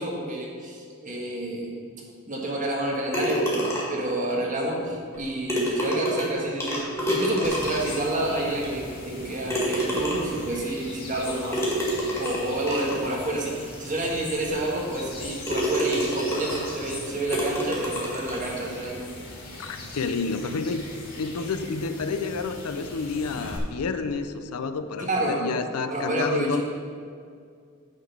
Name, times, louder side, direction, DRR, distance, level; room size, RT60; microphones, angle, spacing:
voice 1, 0.0-1.7 2.3-11.6 12.2-19.1 25.0-25.4 25.9-26.6, right 1 dB, 35° right, -2 dB, 1.5 m, -29 dB
sound 1, 3.1-4.1 5.1-5.2 5.5-8.0 8.6-8.7 9.5-10.4 11.5-13.0 13.7-13.8 14.3-14.4 15.0-15.2 15.5-16.8 17.3-18.5, right 1 dB, 10° left, 1.8 m, -28 dB
sound 2, 7.4-23.6, left 2 dB, 45° left, 1.9 m, -40 dB
voice 2, 19.6-20.8 21.2-26.6, left 4 dB, 90° left, 10 dB, 0.5 m, -29 dB
9.4 x 4.0 x 7.0 m, 2.2 s
head